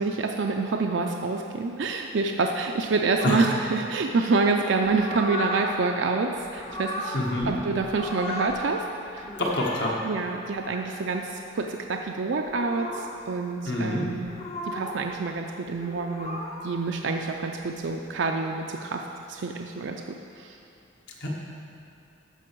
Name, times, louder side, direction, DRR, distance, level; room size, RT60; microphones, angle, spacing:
voice 1, 0.0-7.2 7.5-8.8 9.1-9.3 10.0-14.3 14.7-19.0 19.3-20.6, right 3 dB, 65° right, 3 dB, 0.4 m, -27 dB
sound 1, 3.2-3.8 4.8-5.8 6.4-7.6 7.8-8.6 9.1-9.9 10.6-10.9 12.4-13.2 14.2-15.0 15.7-16.8 17.6-18.0, left 1 dB, 30° left, 0.7 m, -35 dB
voice 2, 7.1-7.5 9.4-9.9 13.6-14.0 21.2-21.3, left 1 dB, 60° left, -3 dB, 1.5 m, -26 dB
13.5 x 5.3 x 4.6 m, 2.7 s
head